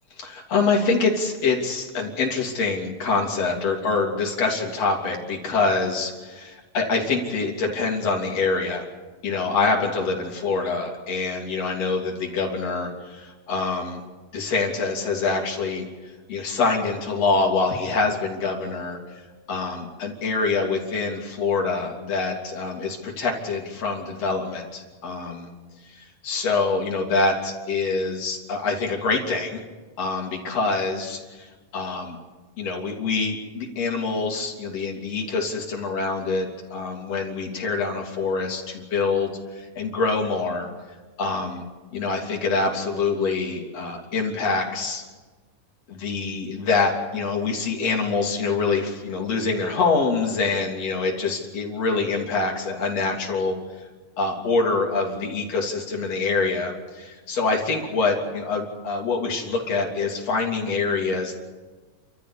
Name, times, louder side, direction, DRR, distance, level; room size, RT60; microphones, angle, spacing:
voice 1, 0.2-8.9 9.2-14.0 14.3-15.9 16.3-19.0 19.5-25.5 25.9-29.6 30.0-32.2 32.6-40.7 41.2-41.6 41.9-45.0 45.9-53.6 54.2-61.4, left 4 dB, 50° left, 0 dB, 4.2 m, -25 dB
29.5 x 13.5 x 8.5 m, 1.3 s
omnidirectional pair, 3.8 m